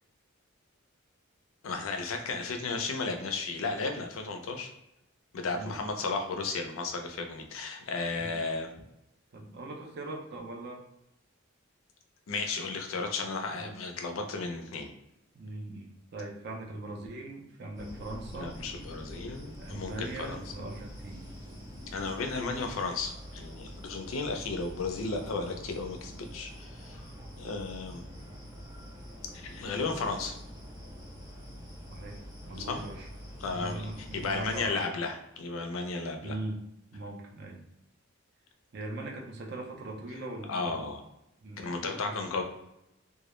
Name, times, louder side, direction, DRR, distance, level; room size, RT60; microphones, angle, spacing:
voice 1, 1.6-4.7 5.3-8.7 12.3-14.9 18.3-20.4 21.9-27.0 27.4-28.0 29.3-30.4 32.6-32.8 33.4-36.3 40.5-41.0 41.6-42.4, left 3 dB, 75° left, 4 dB, 0.4 m, -34 dB
voice 2, 9.3-10.8 13.6-13.8 15.3-18.5 19.5-21.3 31.9-32.2 32.5-33.1 33.5-34.8 36.2-37.7 38.7-40.9 41.4-42.2, right 2 dB, 50° right, 1 dB, 0.4 m, -40 dB
sound 1, 17.8-34.7, equal, 15° right, 0.7 m, -45 dB
2.2 x 2.0 x 3.0 m, 0.87 s
head